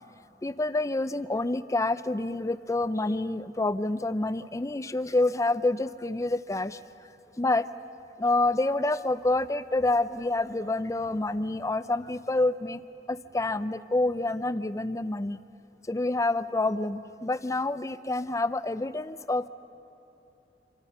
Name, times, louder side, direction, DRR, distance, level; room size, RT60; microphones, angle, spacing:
voice 1, 0.4-6.8 7.4-7.7 8.2-12.8 13.1-15.4 15.9-19.5, left 2 dB, 20° left, 13 dB, 0.5 m, -27 dB
27.0 x 24.5 x 5.6 m, 3.0 s
head